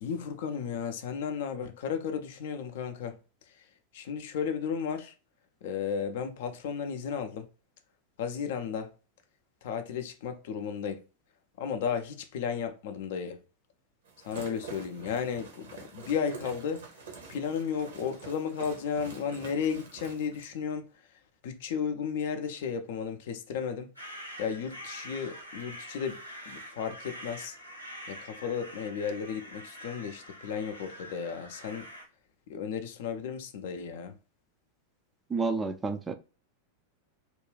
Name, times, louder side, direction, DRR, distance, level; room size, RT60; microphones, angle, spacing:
voice 1, 0.0-3.2 3.9-5.1 5.6-7.5 8.2-8.9 9.6-11.0 11.6-13.4 14.2-16.8 17.3-20.9 21.4-23.9 24.4-27.6 28.1-31.9 32.5-34.2, left 7 dB, 55° left, 0.4 m, -34 dB
sound 1, 14.0-20.5, right 4 dB, 65° right, 0.7 m, -47 dB
sound 2, 23.9-32.1, equal, 90° left, 0.7 m, -45 dB
voice 2, 35.3-36.1, right 4 dB, 15° right, 0.3 m, -30 dB
2.4 x 2.2 x 3.2 m
figure-of-eight pair, 90°, 0 cm